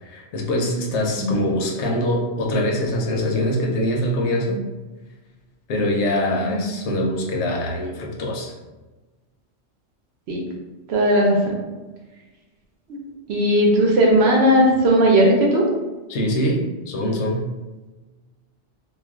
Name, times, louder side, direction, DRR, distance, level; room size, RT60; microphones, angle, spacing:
voice 1, 0.0-4.6 5.7-8.5 16.1-17.4, left 1 dB, 70° left, -1 dB, 0.9 m, -23 dB
voice 2, 1.2-1.5 6.4-6.6 10.3-10.4 10.9-11.5 12.9-13.0 13.3-15.6, equal, 65° right, -1 dB, 0.8 m, -17 dB
2.4 x 2.2 x 3.4 m, 1.2 s
omnidirectional pair, 1.2 m